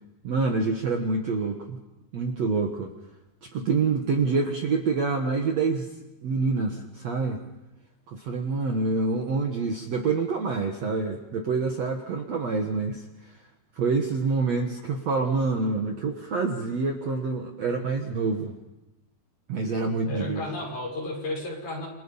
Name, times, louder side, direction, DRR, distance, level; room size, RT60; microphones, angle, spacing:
voice 1, 0.2-1.8 2.1-2.9 3.4-5.9 6.2-7.4 8.1-13.4 13.7-18.5 19.5-20.4, right 4 dB, 55° right, 3 dB, 2.2 m, -27 dB
voice 2, 20.0-21.9, left 1 dB, 50° left, -2 dB, 8.2 m, -33 dB
28.5 x 26.5 x 5.6 m, 0.97 s
omnidirectional pair, 4.5 m